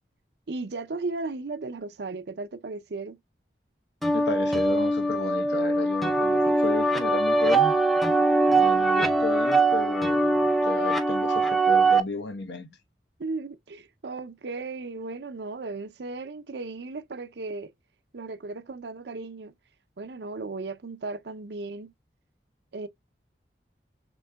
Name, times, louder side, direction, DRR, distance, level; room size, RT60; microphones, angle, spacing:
voice 1, 0.5-3.2 13.2-17.7 18.1-19.5 20.0-21.9 22.7-22.9, right 3 dB, 75° right, 0.6 m, -35 dB
sound 1, 4.0-12.0, right 2 dB, ahead, 0.4 m, -22 dB
voice 2, 4.1-7.8 8.5-10.3 10.6-12.8, left 3 dB, 75° left, 0.8 m, -33 dB
5.2 x 3.7 x 2.2 m
head